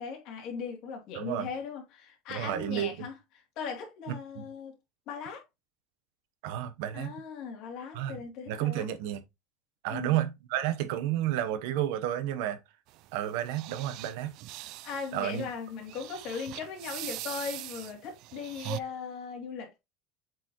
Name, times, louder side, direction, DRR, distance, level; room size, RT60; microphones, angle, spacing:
voice 1, 0.0-3.1 3.6-4.8 5.1-5.4 6.9-8.9 9.9-10.2 14.8-19.8, left 6 dB, 50° left, 2.8 m, -38 dB
voice 2, 1.1-1.5 2.3-3.0 4.4-4.5 6.4-7.1 7.9-8.2 8.5-9.2 9.8-12.6 13.1-14.3 15.1-15.5, right 12 dB, 70° right, 1.0 m, -31 dB
sound 1, 12.9-18.8, right 17 dB, 55° right, 0.4 m, -42 dB
7.7 x 4.7 x 3.0 m
cardioid pair, 155°, 0 cm